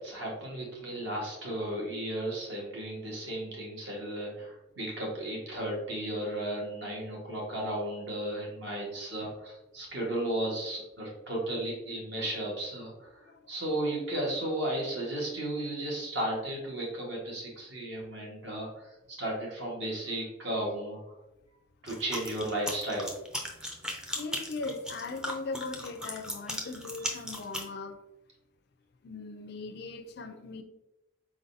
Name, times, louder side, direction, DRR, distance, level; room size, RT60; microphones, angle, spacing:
voice 1, 0.0-21.0 21.8-23.1, right 1 dB, 55° right, -3 dB, 1.5 m, -34 dB
voice 2, 13.2-13.9 24.1-28.0 29.0-30.6, left 3 dB, 50° left, 8 dB, 0.4 m, -39 dB
sound 1, 21.9-27.7, left 1 dB, 5° right, 0.5 m, -37 dB
4.6 x 3.9 x 2.6 m, 0.93 s
head